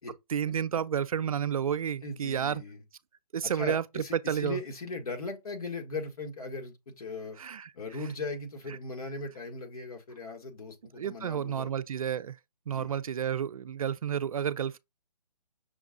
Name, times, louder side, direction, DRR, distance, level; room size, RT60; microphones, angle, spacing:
voice 1, 0.3-2.6 3.3-4.6 7.4-7.7 11.0-12.4 12.7-14.8, right 8 dB, 60° right, 0.4 m, -31 dB
voice 2, 2.0-2.8 3.4-7.4 7.7-11.7 12.7-12.9, left 3 dB, 60° left, 1.6 m, -38 dB
6.1 x 2.4 x 3.7 m
hypercardioid pair, 155°, 21 cm